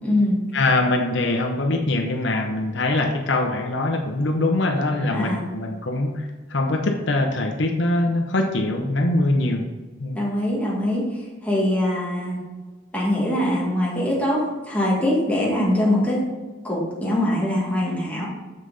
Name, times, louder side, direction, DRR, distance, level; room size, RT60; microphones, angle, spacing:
voice 1, 0.0-0.4 5.1-5.4 10.1-11.0 11.4-12.4 12.9-16.2 16.6-18.3, left 1 dB, 5° left, -5 dB, 2.1 m, -22 dB
voice 2, 0.5-9.6 10.0-10.2, left 2 dB, 65° left, 3 dB, 0.8 m, -23 dB
7.4 x 6.4 x 4.0 m, 1.3 s
head